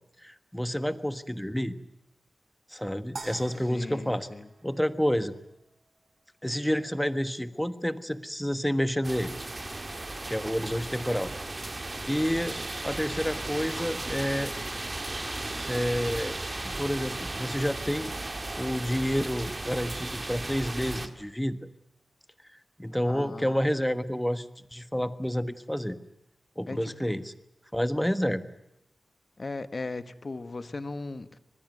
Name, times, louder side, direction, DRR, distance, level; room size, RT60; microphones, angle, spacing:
voice 1, 0.2-1.8 2.7-4.3 4.6-5.3 6.4-9.3 10.3-11.3 12.1-14.5 15.7-16.4 16.6-18.1 18.6-21.6 22.8-26.0 26.6-27.3 27.7-28.4, equal, 5° left, 12 dB, 1.4 m, -29 dB
sound 1, 3.2-5.5, right 3 dB, 50° right, 2.0 m, -45 dB
voice 2, 3.7-4.5 23.0-23.6 26.7-27.2 29.4-31.4, left 3 dB, 45° left, 13 dB, 1.4 m, -38 dB
sound 2, 9.0-21.1, right 2 dB, 30° right, 2.1 m, -35 dB
24.5 x 20.5 x 9.2 m, 0.81 s
wide cardioid pair, 80°, 0 cm